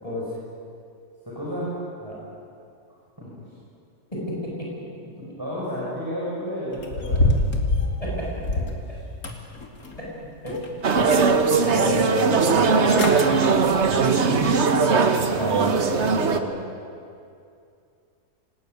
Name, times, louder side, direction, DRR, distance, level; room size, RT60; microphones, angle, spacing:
voice 1, 1.2-1.7 3.2-3.3 5.4-7.4 8.5-8.7 11.7-12.0 13.3-13.5, equal, 15° right, -7 dB, 6.8 m, -32 dB
voice 2, 4.1-4.7 8.0-8.3 8.9-9.0 10.4-10.6 11.6-12.7 13.8-14.6 15.4-16.5, equal, 20° left, -4 dB, 7.7 m, -30 dB
sound 1, 6.8-8.8 9.2-10.1 10.5-11.3 11.7-11.8 12.6-12.7 12.9-13.2 13.7-13.9 14.4-14.5, left 2 dB, 65° left, 2.9 m, -25 dB
sound 2, 10.8-16.4, right 5 dB, 45° right, 1.4 m, -20 dB
26.5 x 19.0 x 9.6 m, 2.5 s
omnidirectional pair, 1.7 m